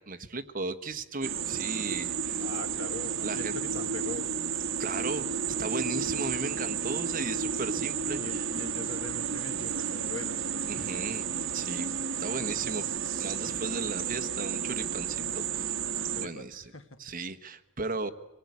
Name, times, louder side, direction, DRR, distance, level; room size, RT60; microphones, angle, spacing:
voice 1, 0.0-2.4 3.2-3.6 4.8-5.3 5.6-8.4 10.7-11.2 11.5-15.8 16.2-16.7 17.0-18.1, right 3 dB, 40° right, 8 dB, 1.2 m, -36 dB
sound 1, 1.2-16.3, right 7 dB, 60° right, 1.3 m, -32 dB
voice 2, 2.4-4.3 8.2-10.5 13.7-13.9 16.0-17.0, left 3 dB, 60° left, 8 dB, 1.7 m, -42 dB
25.5 x 18.5 x 9.5 m, 1.0 s
head